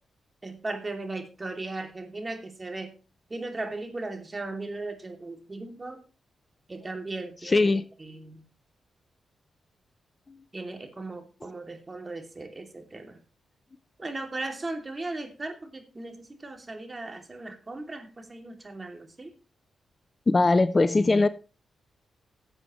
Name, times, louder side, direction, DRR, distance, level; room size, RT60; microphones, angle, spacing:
voice 1, 0.4-2.9 3.3-6.0 6.7-7.7 8.0-8.4 10.5-13.2 14.0-19.3, right 2 dB, 35° right, 2.7 m, -37 dB
voice 2, 7.5-7.8 10.3-10.4 20.3-21.3, left 3 dB, 35° left, 0.6 m, -21 dB
15.0 x 7.9 x 3.1 m
supercardioid pair, 45°, 0 cm